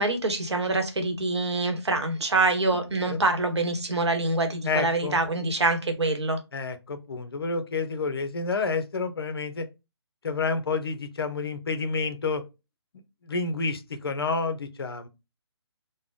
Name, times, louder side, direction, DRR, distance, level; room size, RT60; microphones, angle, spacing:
voice 1, 0.0-6.4, right 2 dB, 80° right, 0.9 m, -25 dB
voice 2, 4.6-5.2 6.5-9.7 10.2-12.4 13.2-15.1, left 4 dB, 60° left, 0.6 m, -29 dB
3.3 x 2.1 x 3.7 m
figure-of-eight pair, 140°, 14 cm